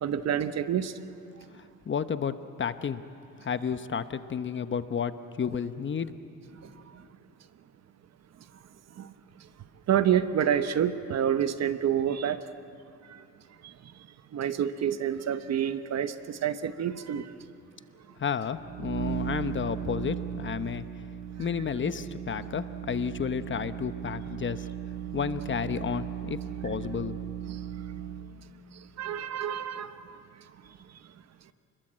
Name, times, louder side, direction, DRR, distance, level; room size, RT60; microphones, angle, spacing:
voice 1, 0.0-0.9 9.0-9.1 9.9-12.4 13.1-13.2 14.3-17.3 27.5-27.6 29.0-30.2, right 9 dB, 60° right, 11 dB, 1.0 m, -28 dB
voice 2, 1.5-3.0 3.4-6.1 18.2-20.8 21.4-24.7 25.1-27.2, left 7 dB, 40° left, 11 dB, 1.0 m, -32 dB
sound 1, 18.5-28.4, right 11 dB, 80° right, 1.6 m, -37 dB
29.5 x 21.5 x 7.6 m, 2.6 s
cardioid pair, 90°, 30 cm